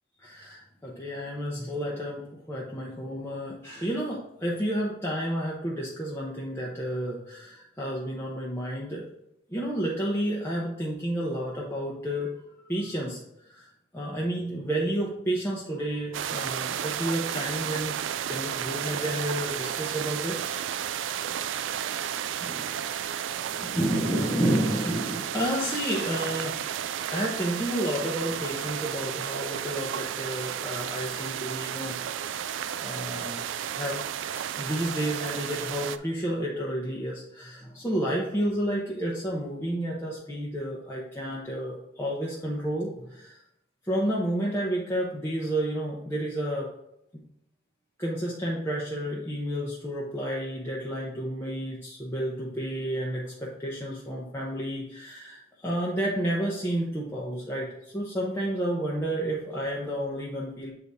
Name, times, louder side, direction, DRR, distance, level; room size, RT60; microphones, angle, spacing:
voice 1, 0.2-9.1 9.5-12.3 12.7-13.2 13.5-13.7 13.9-18.0 18.3-20.4 22.4-22.6 23.4-26.5 27.1-32.3 32.8-33.4 33.7-34.0 34.3-43.4 43.8-46.7 48.0-60.7, right 1 dB, 15° left, -5 dB, 0.8 m, -31 dB
sound 1, 16.1-36.0, right 9 dB, 75° right, 0.3 m, -33 dB
8.0 x 4.1 x 3.5 m, 0.80 s
head